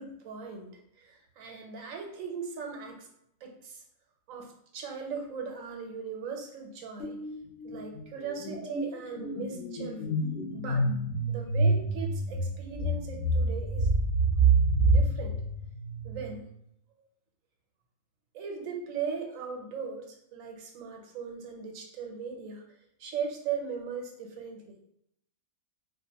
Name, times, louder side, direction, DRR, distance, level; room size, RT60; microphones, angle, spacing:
voice 1, 0.0-3.1 3.4-3.8 4.3-7.2 7.6-10.0 10.5-10.9 11.3-13.9 14.9-15.4 16.0-16.5 18.3-22.6 23.0-24.8, right 6 dB, 80° right, 2 dB, 1.1 m, -38 dB
sound 1, 7.0-7.3 7.6-16.4, right 2 dB, 65° left, 1.4 m, -27 dB
4.3 x 2.5 x 2.8 m, 0.74 s
omnidirectional pair, 1.4 m